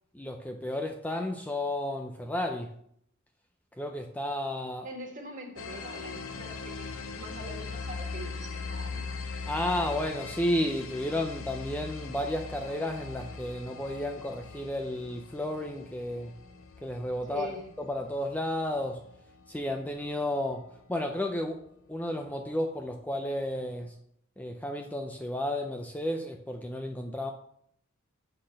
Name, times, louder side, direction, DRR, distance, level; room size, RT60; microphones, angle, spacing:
voice 1, 0.1-2.7 3.8-4.9 9.5-16.3 16.8-19.0 19.5-20.6 20.9-21.6 21.9-24.0 24.4-27.3, left 1 dB, 10° left, 4 dB, 0.5 m, -32 dB
voice 2, 4.8-9.1 17.3-17.6, right 1 dB, 35° right, 1 dB, 1.7 m, -43 dB
sound 1, 5.6-21.0, left 4 dB, 70° left, 0.7 m, -41 dB
7.8 x 4.2 x 6.4 m, 0.69 s
head